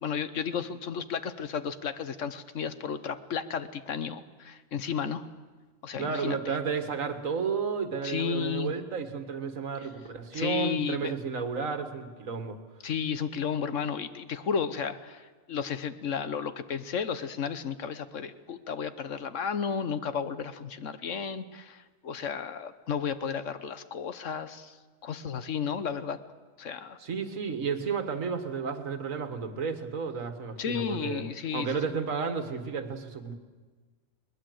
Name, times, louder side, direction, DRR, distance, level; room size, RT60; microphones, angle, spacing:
voice 1, 0.0-5.3 5.8-6.6 8.0-8.7 10.3-11.2 12.8-24.8 25.0-26.2 26.6-27.0 30.6-31.7, left 7 dB, 65° left, 12 dB, 1.2 m, -33 dB
voice 2, 6.0-12.6 27.0-31.3 31.5-33.3, right 5 dB, 70° right, 8 dB, 1.9 m, -32 dB
21.5 x 20.5 x 7.8 m, 1.3 s
omnidirectional pair, 1.4 m